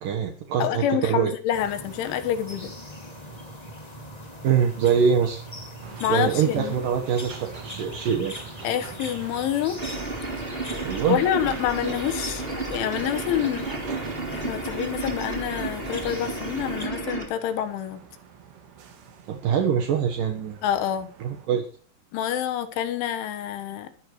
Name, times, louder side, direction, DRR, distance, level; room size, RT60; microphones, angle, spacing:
voice 1, 0.0-1.3 4.4-5.4 6.1-8.4 10.8-11.2 19.3-20.6 21.2-21.7, right 7 dB, 75° right, 3 dB, 2.0 m, -24 dB
voice 2, 0.6-2.7 6.0-6.8 8.6-9.8 11.1-13.7 14.3-18.0 20.6-21.1 22.1-23.9, left 10 dB, 70° left, 9 dB, 3.7 m, -27 dB
sound 1, 1.5-16.9, equal, 40° left, 0.5 m, -40 dB
sound 2, 5.8-21.5, right 6 dB, 60° right, 3.8 m, -46 dB
sound 3, 9.8-17.3, right 3 dB, 15° right, 2.1 m, -32 dB
22.0 x 11.0 x 3.2 m, 0.38 s
omnidirectional pair, 6.0 m